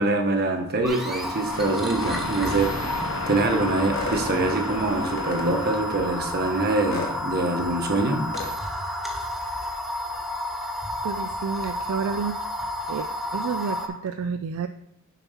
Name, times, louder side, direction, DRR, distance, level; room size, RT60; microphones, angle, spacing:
voice 1, 0.0-2.7 3.3-8.2, right 2 dB, 50° right, 4 dB, 1.1 m, -24 dB
sound 1, 0.8-13.9, left 1 dB, ahead, 0.9 m, -31 dB
sound 2, 1.5-7.1, left 2 dB, 85° left, 0.9 m, -35 dB
sound 3, 3.9-4.2 5.2-5.5 6.9-7.1 8.3-8.5, left 3 dB, 50° left, 1.4 m, -32 dB
voice 2, 11.0-12.4 12.9-14.7, right 6 dB, 70° right, 9 dB, 0.3 m, -30 dB
7.0 x 4.4 x 5.6 m, 0.84 s
head